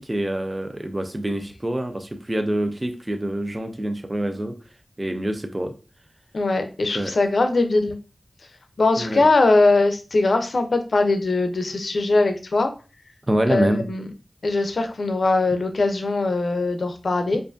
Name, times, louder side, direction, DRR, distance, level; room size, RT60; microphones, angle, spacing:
voice 1, 0.0-4.5 5.0-5.7 6.9-7.1 9.0-9.3 13.3-13.8, right 1 dB, 30° right, 7 dB, 0.6 m, -26 dB
voice 2, 6.3-8.0 8.8-12.7 13.5-14.1 14.4-17.4, left 3 dB, 85° left, 7 dB, 0.6 m, -21 dB
4.7 x 2.6 x 2.5 m, 0.32 s
wide cardioid pair, 45°, 0 cm